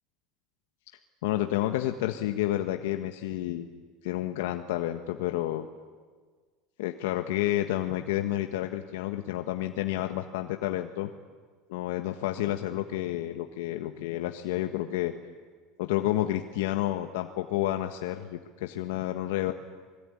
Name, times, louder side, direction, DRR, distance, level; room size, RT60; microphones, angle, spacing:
voice 1, 1.2-3.7 4.0-5.6 6.8-11.1 11.7-15.1 15.8-19.5, left 14 dB, 85° left, 6 dB, 1.4 m, -30 dB
27.5 x 20.5 x 9.9 m, 1.5 s
cardioid pair, 175°, 0 cm